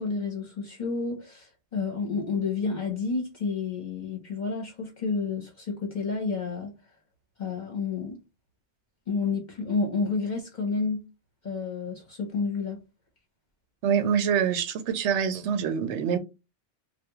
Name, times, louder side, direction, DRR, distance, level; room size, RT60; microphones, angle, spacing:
voice 1, 0.0-6.7 7.4-8.2 9.1-11.0 11.4-12.8, left 4 dB, 45° left, 0.9 m, -30 dB
voice 2, 13.8-16.2, right 7 dB, 80° right, 0.9 m, -25 dB
3.4 x 2.3 x 3.0 m
omnidirectional pair, 1.2 m